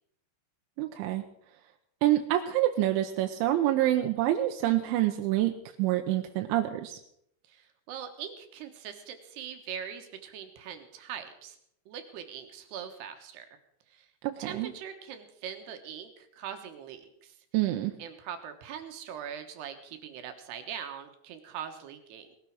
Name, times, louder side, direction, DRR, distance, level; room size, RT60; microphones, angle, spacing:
voice 1, 0.8-1.2 2.0-7.0 14.2-14.7 17.5-17.9, right 14 dB, 85° right, 5 dB, 3.2 m, -27 dB
voice 2, 7.5-11.6 11.9-13.6 13.9-14.1 14.4-17.4 18.0-22.4, right 8 dB, 70° right, 6 dB, 3.1 m, -42 dB
19.0 x 13.0 x 4.7 m, 0.71 s
omnidirectional pair, 5.3 m